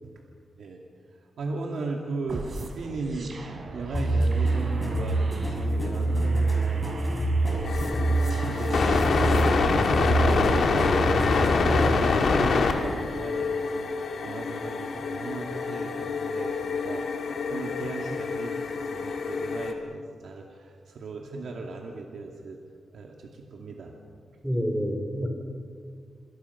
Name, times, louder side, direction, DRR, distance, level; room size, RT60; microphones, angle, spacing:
voice 1, 1.4-11.3 11.6-22.6 22.9-23.9 24.3-24.4, right 3 dB, 75° right, 1 dB, 2.5 m, -37 dB
sound 1, 2.3-9.5, right 3 dB, 55° right, 3.7 m, -41 dB
sound 2, 3.9-12.0, right 2 dB, 20° left, 6.7 m, -26 dB
sound 3, 7.6-19.7, left 4 dB, 70° left, 3.0 m, -26 dB
voice 2, 24.4-25.3, equal, 5° right, 2 dB, 4.3 m, -27 dB
28.5 x 26.5 x 5.9 m, 2.1 s
wide cardioid pair, 110°, 0 cm